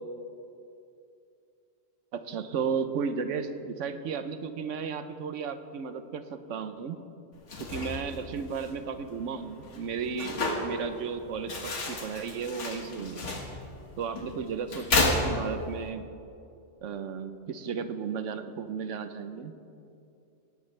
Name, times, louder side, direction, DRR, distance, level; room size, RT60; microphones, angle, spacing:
voice 1, 2.1-7.0 7.6-13.2 14.0-16.0 16.8-19.5, right 6 dB, 70° right, 10 dB, 1.1 m, -34 dB
sound 1, 7.3-15.9, left 2 dB, 65° left, 1.9 m, -33 dB
18.5 x 15.5 x 3.3 m, 2.6 s
omnidirectional pair, 1.4 m